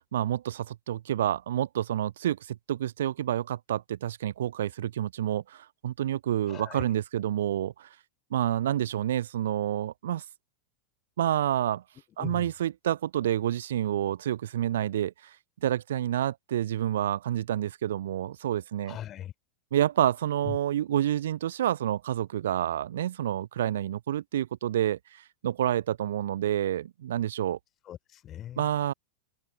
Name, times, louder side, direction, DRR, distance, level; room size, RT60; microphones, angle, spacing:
voice 1, 0.1-7.9 8.3-10.2 11.2-11.8 12.2-15.3 15.6-19.0 19.7-27.6 28.6-28.9, right 11 dB, 60° right, 0.5 m, -28 dB
voice 2, 6.5-6.8 12.2-12.5 18.8-19.3 20.4-20.6 27.8-28.7, left 11 dB, 30° left, 4.3 m, -40 dB
open air
figure-of-eight pair, 90°, 0 cm